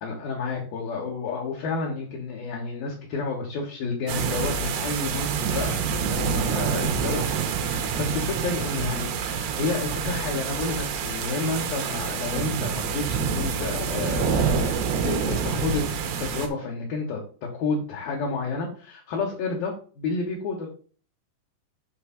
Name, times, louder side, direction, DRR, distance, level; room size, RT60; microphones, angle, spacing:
voice 1, 0.0-20.7, left 4 dB, 70° left, -1 dB, 2.4 m, -30 dB
sound 1, 4.1-16.5, right 6 dB, 75° right, 2.6 m, -27 dB
7.1 x 3.2 x 5.7 m, 0.41 s
omnidirectional pair, 5.4 m